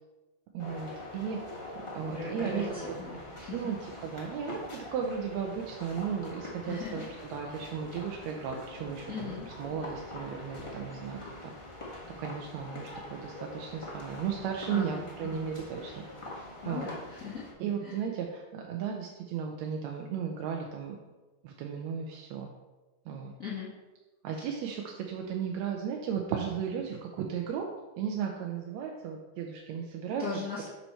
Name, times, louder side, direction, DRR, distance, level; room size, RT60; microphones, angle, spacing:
voice 1, 0.5-1.4 1.7-3.0 3.5-7.0 7.3-11.5 12.2-16.0 16.3-16.9 17.6-21.0 21.4-22.5 23.0-23.3 24.2-27.7 28.0-30.3, right 7 dB, 75° right, 1 dB, 1.8 m, -35 dB
sound 1, 0.6-17.5, left 1 dB, 30° left, 0.6 m, -44 dB
voice 2, 2.1-3.6 6.7-7.1 9.1-9.5 14.7-15.5 16.6-17.4 17.8-18.0 23.4-23.7 30.2-30.7, left 5 dB, 90° left, -8 dB, 0.7 m, -39 dB
6.9 x 5.9 x 4.4 m, 1.2 s
omnidirectional pair, 3.6 m